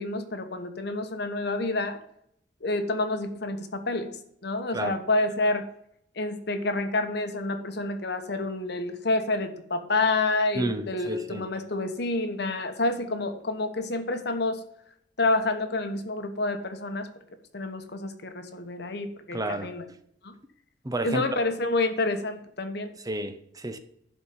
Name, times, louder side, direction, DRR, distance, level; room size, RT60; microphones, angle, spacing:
voice 1, 0.0-2.0 2.6-5.7 6.2-14.6 15.2-17.1 17.5-19.8 20.2-20.3 21.0-22.9, left 2 dB, 65° left, 1.2 m, -28 dB
voice 2, 10.5-11.4 19.3-19.7 20.8-21.4 23.1-23.8, right 1 dB, 20° right, 0.8 m, -31 dB
11.0 x 4.5 x 6.9 m
head